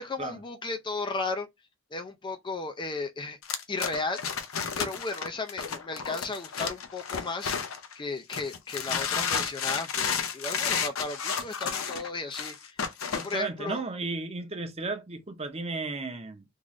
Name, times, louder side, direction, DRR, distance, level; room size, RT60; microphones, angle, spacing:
voice 1, 0.0-1.5 1.9-3.4 3.7-4.2 4.8-7.5 7.9-12.8 13.1-13.8, left 3 dB, 25° left, 0.4 m, -35 dB
sound 1, 3.4-7.9 8.3-13.4, left 6 dB, 80° left, 0.7 m, -32 dB
voice 2, 13.3-16.4, right 3 dB, 30° right, 0.8 m, -34 dB
3.7 x 2.5 x 3.1 m
head